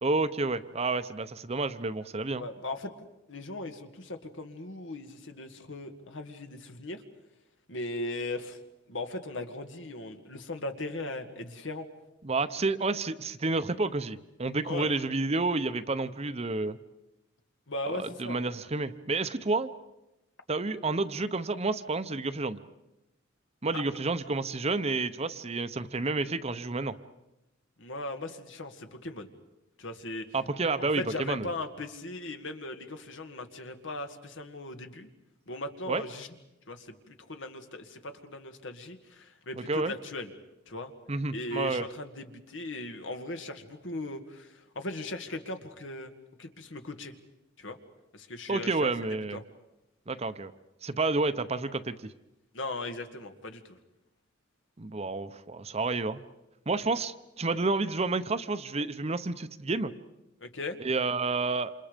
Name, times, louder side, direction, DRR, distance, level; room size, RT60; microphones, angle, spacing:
voice 1, 0.0-2.4 12.2-16.8 17.9-19.7 20.5-22.6 23.6-26.9 30.3-31.5 35.9-36.0 39.5-39.9 41.1-41.8 48.5-49.4 50.1-50.5 50.8-51.9 54.8-56.2 56.7-59.9 60.8-61.7, right 3 dB, 35° right, 12 dB, 0.8 m, -30 dB
voice 2, 2.4-7.0 7.7-8.6 8.9-11.9 14.6-14.9 17.7-18.4 23.7-23.8 27.8-29.3 29.8-30.3 30.8-35.1 35.5-36.3 36.7-40.3 40.7-40.9 41.3-46.1 46.4-47.1 47.6-47.8 48.1-49.4 52.5-53.8 57.5-57.6 60.4-60.8, left 2 dB, 75° left, 7 dB, 2.0 m, -38 dB
28.5 x 27.5 x 5.2 m, 0.95 s
head